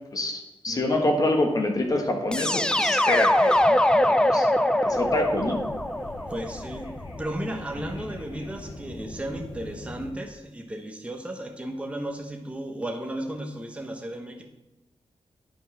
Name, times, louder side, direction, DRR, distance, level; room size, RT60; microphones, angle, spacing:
voice 1, 0.1-3.6 4.1-4.5 4.8-5.6, left 1 dB, 35° left, 3 dB, 1.3 m, -26 dB
voice 2, 0.7-1.1 6.3-6.9 7.2-14.4, right 1 dB, 10° right, 3 dB, 1.0 m, -34 dB
sound 1, 2.3-7.2, left 1 dB, 10° left, 0.5 m, -23 dB
sound 2, 4.9-10.1, left 2 dB, 70° left, 1.7 m, -41 dB
9.5 x 5.4 x 6.0 m, 0.97 s
wide cardioid pair, 115°, 11 cm